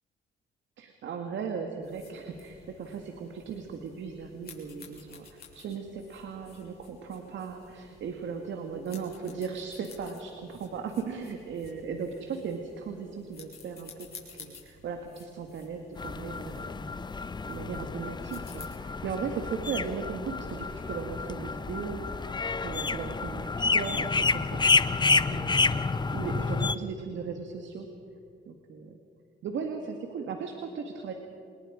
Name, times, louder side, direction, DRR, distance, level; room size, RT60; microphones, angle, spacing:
voice 1, 0.8-13.9 14.4-17.0 17.5-25.0 25.3-27.9 28.5-29.0 29.4-31.1, right 5 dB, 70° right, 4 dB, 2.0 m, -37 dB
sound 1, 1.8-18.7, left 5 dB, 50° left, 6.9 m, -53 dB
sound 2, 16.0-26.7, left 4 dB, 20° left, 0.8 m, -29 dB
27.5 x 20.5 x 5.1 m, 2.7 s
cardioid pair, 90°, 20 cm